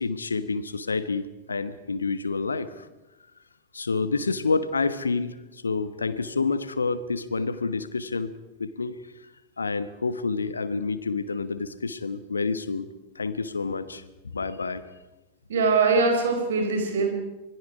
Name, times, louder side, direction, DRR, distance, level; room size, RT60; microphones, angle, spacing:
voice 1, 0.0-2.9 3.7-8.3 8.6-8.9 9.6-12.9 13.1-14.0 14.3-14.9, left 4 dB, 75° left, 13 dB, 1.3 m, -28 dB
voice 2, 15.5-17.1, right 4 dB, 60° right, 5 dB, 4.7 m, -22 dB
26.5 x 22.0 x 4.9 m, 1.0 s
figure-of-eight pair, 90°, 0 cm